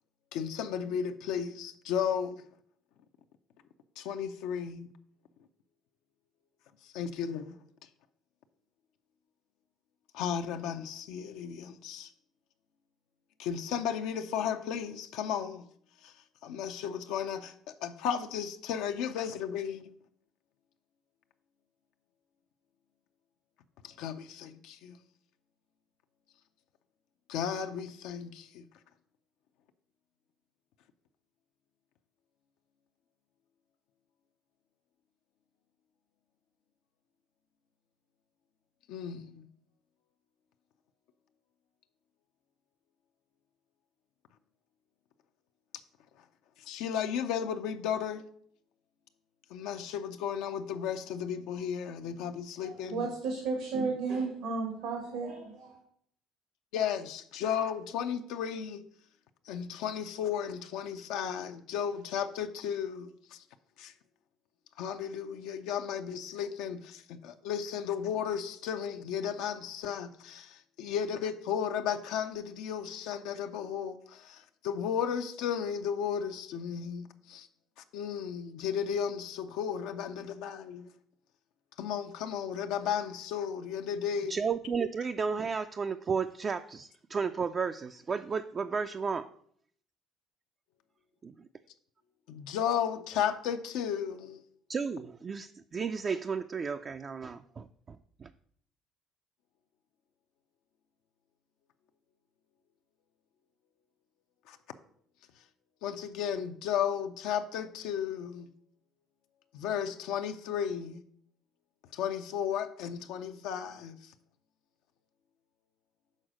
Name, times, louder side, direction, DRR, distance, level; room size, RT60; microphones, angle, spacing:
voice 1, 0.3-2.4 4.0-4.9 6.8-7.5 10.1-12.1 13.4-15.6 16.0-16.1 16.4-17.5 17.8-19.9 23.8-25.0 27.3-28.7 38.9-39.5 46.6-48.2 49.5-53.1 56.7-58.8 59.4-63.4 63.8-63.9 64.8-77.5 77.8-80.9 81.8-84.4 92.3-94.4 104.5-104.6 105.8-108.5 109.5-111.0 111.9-114.1, left 8 dB, 80° left, 0.4 m, -34 dB
voice 2, 52.6-55.8, right 4 dB, 80° right, 1.4 m, -33 dB
voice 3, 84.3-89.3 91.2-91.5 94.7-98.3, right 5 dB, 35° right, 0.3 m, -33 dB
6.4 x 4.0 x 6.1 m
supercardioid pair, 95°, 0 cm